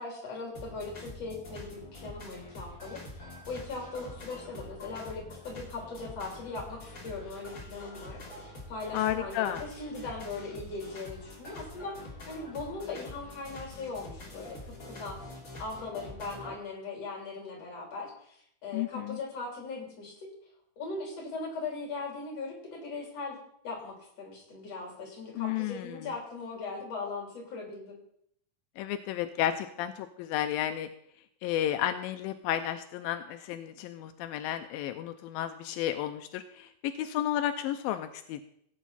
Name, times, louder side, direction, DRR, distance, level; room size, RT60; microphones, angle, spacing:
voice 1, 0.0-15.2 15.6-20.3 20.8-23.4 23.6-28.0, left 3 dB, 45° left, 0 dB, 4.4 m, -39 dB
sound 1, 0.5-16.6, left 2 dB, 25° left, 3.2 m, -46 dB
voice 2, 8.9-9.6 18.7-19.2 25.4-26.1 28.8-30.9 31.4-38.4, left 11 dB, 85° left, 8 dB, 2.4 m, -32 dB
17.0 x 9.2 x 4.2 m, 0.69 s
omnidirectional pair, 4.1 m